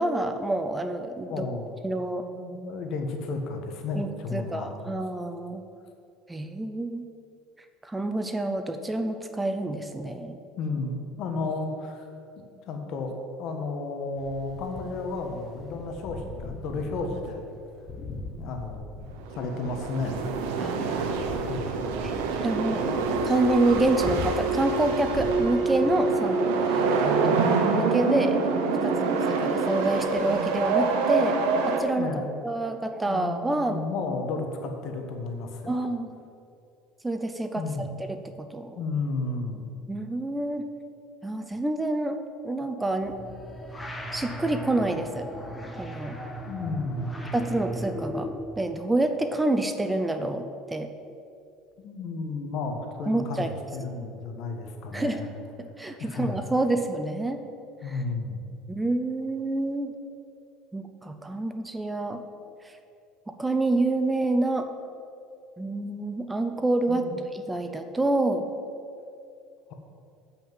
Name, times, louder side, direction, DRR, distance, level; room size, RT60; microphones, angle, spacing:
voice 1, 0.0-1.5 1.8-2.2 4.0-5.6 6.3-7.1 7.8-10.4 20.6-20.8 22.0-22.2 22.4-28.4 28.8-31.4 31.6-32.1 32.4-33.8 35.7-36.1 37.0-38.8 39.9-40.7 41.2-42.2 42.4-43.1 44.1-45.3 45.8-46.2 47.3-48.3 48.6-50.9 53.1-53.5 54.9-55.2 55.6-57.4 57.9-58.0 58.7-59.9 60.7-62.2 62.6-62.7 63.3-64.7 65.6-67.1 67.3-68.5, right 2 dB, 10° right, 7 dB, 0.6 m, -28 dB
voice 2, 1.2-1.7 2.0-4.8 10.6-12.1 12.4-17.5 18.4-18.9 19.3-20.2 20.8-21.1 21.5-21.7 32.0-32.2 33.0-35.8 37.5-37.9 38.7-39.6 46.5-47.1 51.8-55.3 56.0-56.4 57.8-58.4 66.9-67.2, left 3 dB, 60° left, 4 dB, 1.4 m, -33 dB
sound 1, 14.2-25.3, left 3 dB, 40° left, 1.2 m, -41 dB
sound 2, 19.2-31.8, right 4 dB, 85° right, 1.1 m, -26 dB
sound 3, 43.0-48.6, equal, 10° left, 1.1 m, -36 dB
7.7 x 5.8 x 7.5 m, 2.5 s
supercardioid pair, 110°, 0 cm